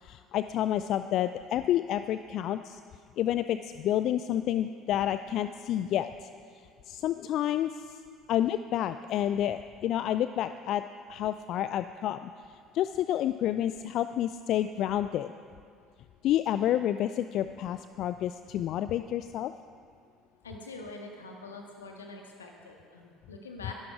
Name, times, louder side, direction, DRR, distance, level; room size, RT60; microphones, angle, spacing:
voice 1, 0.0-2.8 3.2-6.3 6.9-7.8 8.3-10.8 11.1-12.3 12.7-15.3 16.2-19.5, left 11 dB, 50° left, 12 dB, 0.4 m, -29 dB
voice 2, 20.4-23.7, left 3 dB, 80° left, 2 dB, 1.8 m, -45 dB
22.0 x 12.0 x 4.8 m, 2.2 s
figure-of-eight pair, 60°, 0 cm